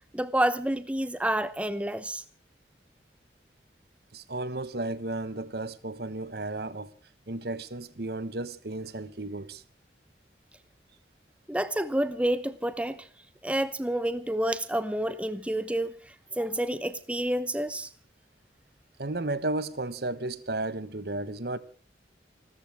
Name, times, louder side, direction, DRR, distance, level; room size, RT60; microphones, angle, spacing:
voice 1, 0.1-2.2 11.5-13.1 13.4-15.9 16.4-17.9, right 1 dB, 5° right, 0.8 m, -29 dB
voice 2, 4.1-6.9 7.3-9.6 19.0-21.6, right 2 dB, 60° right, 1.3 m, -33 dB
29.5 x 14.0 x 3.5 m
head